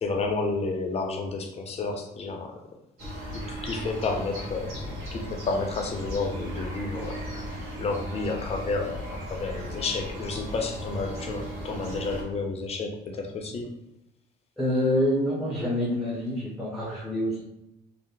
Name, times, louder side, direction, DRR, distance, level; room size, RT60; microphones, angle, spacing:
voice 1, 0.0-2.6 3.3-7.4 7.8-13.7, left 3 dB, 35° left, 2 dB, 0.6 m, -31 dB
sound 1, 3.0-12.2, equal, 80° right, 1.2 m, -37 dB
voice 2, 14.6-17.4, left 1 dB, ahead, -6 dB, 0.7 m, -26 dB
2.6 x 2.0 x 3.6 m, 0.84 s
cardioid pair, 110°, 17 cm